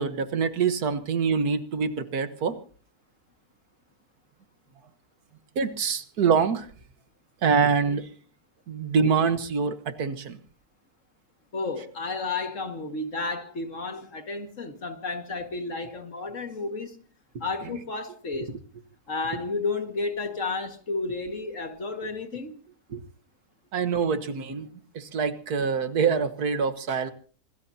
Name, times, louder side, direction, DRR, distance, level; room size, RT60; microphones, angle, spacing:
voice 1, 0.0-2.6 5.6-6.7 7.4-8.1 8.7-10.4 22.9-23.0 23.7-24.7 24.9-27.1, right 6 dB, 75° right, 1.8 m, -25 dB
voice 2, 11.5-17.0 17.4-18.5 19.1-22.5, left 3 dB, 55° left, 2.2 m, -32 dB
26.5 x 19.0 x 2.8 m
omnidirectional pair, 1.6 m